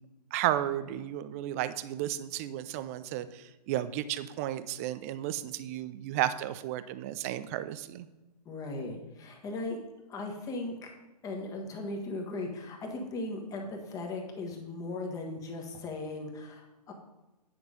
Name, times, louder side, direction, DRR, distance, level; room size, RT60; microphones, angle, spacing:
voice 1, 0.3-8.1, right 13 dB, 20° right, 14 dB, 0.4 m, -33 dB
voice 2, 8.4-9.8 10.1-10.8 11.2-16.9, left 2 dB, 15° left, 2 dB, 1.5 m, -37 dB
9.6 x 6.1 x 5.2 m, 1.1 s
figure-of-eight pair, 130°, 21 cm